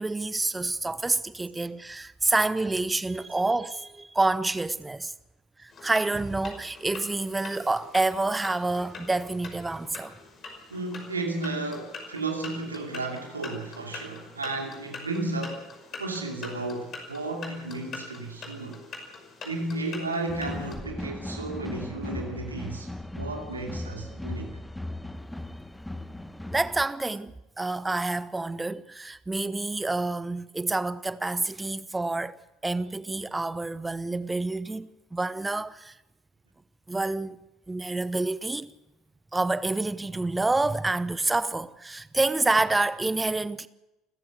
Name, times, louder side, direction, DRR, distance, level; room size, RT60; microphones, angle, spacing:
voice 1, 0.0-5.1 5.6-10.1 26.5-32.4 32.6-36.0 36.9-37.4 37.7-38.7 39.3-43.7, right 2 dB, 15° right, 0.9 m, -28 dB
sound 1, 5.7-20.8, left 4 dB, 40° left, 5.6 m, -44 dB
voice 2, 10.7-15.7 16.0-18.8 19.4-22.9 23.2-24.5, right 2 dB, 80° right, 2.6 m, -33 dB
sound 2, 20.3-26.8, left 1 dB, 5° left, 1.4 m, -37 dB
29.5 x 14.5 x 6.8 m
figure-of-eight pair, 60°, 0 cm